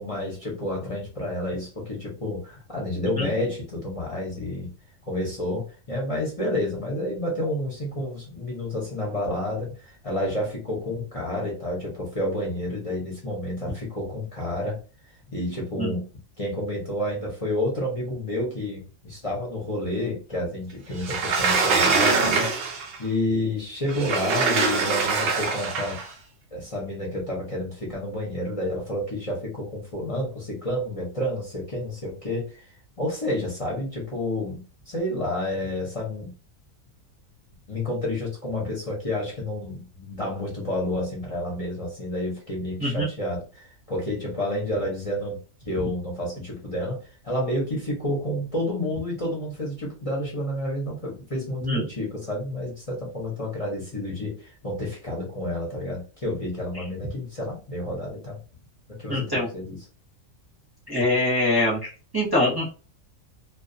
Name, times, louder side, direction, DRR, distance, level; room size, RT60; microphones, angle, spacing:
voice 1, 0.0-4.7 5.1-14.8 15.3-16.1 16.4-26.0 26.5-36.3 37.7-45.4 45.6-58.4 58.9-59.8, left 1 dB, 35° left, -3 dB, 0.6 m, -30 dB
Sliding door, 21.0-23.0 23.9-26.1, right 4 dB, 60° right, 0.6 m, -23 dB
voice 2, 59.1-59.5 60.9-62.7, left 1 dB, 20° right, -5 dB, 0.7 m, -24 dB
2.3 x 2.3 x 2.5 m, 0.35 s
omnidirectional pair, 1.4 m